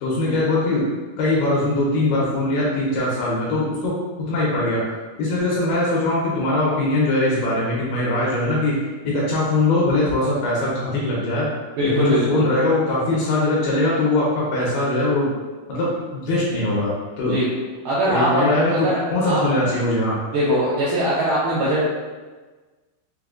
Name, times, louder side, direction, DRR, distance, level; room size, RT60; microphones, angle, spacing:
voice 1, 0.0-0.8 1.2-3.9 4.3-4.8 5.2-8.8 9.0-11.5 11.8-15.3 15.7-17.4 18.1-20.2, left 2 dB, 75° left, -6 dB, 2.5 m, -21 dB
voice 2, 11.8-12.5 17.2-17.5 17.8-18.4 18.7-19.4 20.3-21.8, equal, 80° right, -10 dB, 2.1 m, -21 dB
6.7 x 2.3 x 2.4 m, 1.3 s
omnidirectional pair, 5.0 m